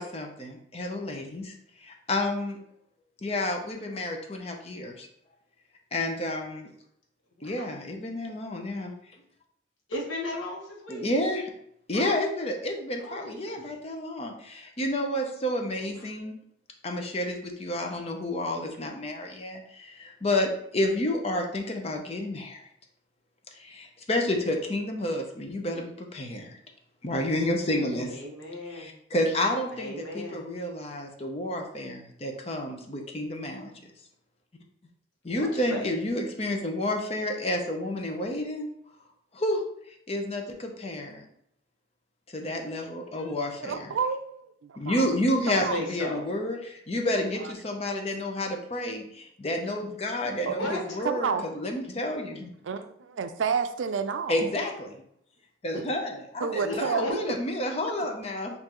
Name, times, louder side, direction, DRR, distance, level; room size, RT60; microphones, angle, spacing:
voice 1, 0.0-2.6 3.2-5.1 5.9-6.7 7.4-8.9 10.9-11.5 11.9-16.4 16.8-22.6 23.5-26.6 27.0-28.1 28.7-33.7 35.2-38.7 39.3-39.6 40.1-41.2 42.3-43.9 44.8-52.5 54.3-55.0 55.6-58.5, left 1 dB, 30° left, 3 dB, 0.6 m, -30 dB
voice 2, 7.3-7.8 9.9-11.1 11.9-12.2 13.0-13.5 15.8-16.1 28.0-28.9 29.7-30.5 35.3-35.9 45.6-46.3 50.4-51.0 57.0-57.1, left 1 dB, 85° left, -1 dB, 1.2 m, -36 dB
voice 3, 43.6-45.1 45.5-45.8 47.4-47.5 47.9-48.0 50.5-50.7 51.0-51.4 52.6-54.5 56.4-57.4, right 6 dB, 75° right, 9 dB, 0.4 m, -30 dB
6.6 x 2.6 x 3.0 m, 0.71 s
head